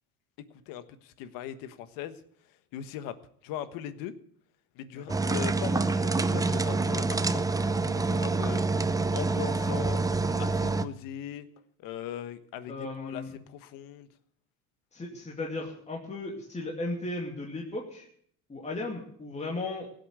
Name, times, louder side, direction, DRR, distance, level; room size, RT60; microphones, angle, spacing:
voice 1, 0.7-2.2 2.7-3.2 3.4-4.1 4.7-7.4 7.9-8.6 9.1-10.0 10.4-11.5 11.8-14.1, left 11 dB, 65° left, 11 dB, 1.5 m, -39 dB
sound 1, 5.1-10.8, right 3 dB, 10° right, 0.6 m, -27 dB
voice 2, 12.7-13.4 14.9-18.1 18.5-19.9, left 2 dB, 20° left, -2 dB, 2.7 m, -36 dB
16.5 x 8.1 x 8.1 m, 0.63 s
supercardioid pair, 110°, 36 cm